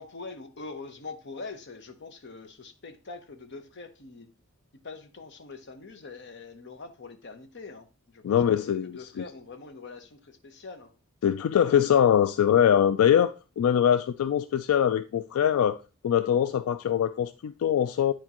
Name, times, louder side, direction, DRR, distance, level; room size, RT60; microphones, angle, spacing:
voice 1, 0.0-4.3 4.8-10.9, left 3 dB, 55° left, 0.8 m, -43 dB
voice 2, 8.2-9.2 11.2-15.8 16.0-18.1, left 9 dB, 80° left, 0.3 m, -23 dB
9.5 x 4.4 x 2.9 m
head